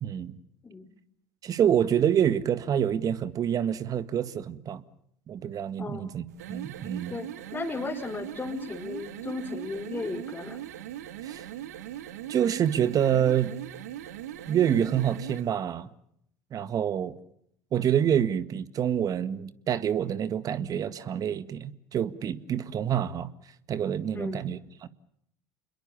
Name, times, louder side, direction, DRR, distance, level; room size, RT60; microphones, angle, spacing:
voice 1, 0.0-0.4 1.4-4.8 5.3-7.1 11.2-11.5 12.3-13.5 14.5-15.9 16.5-17.2 17.7-23.3 23.7-24.9, right 9 dB, 45° right, 1.8 m, -27 dB
sound 1, 6.3-15.5, right 12 dB, 80° right, 1.3 m, -40 dB
voice 2, 7.1-10.6 24.1-24.4, left 3 dB, 20° left, 3.6 m, -35 dB
29.5 x 22.0 x 7.2 m
hypercardioid pair, 70°, 9 cm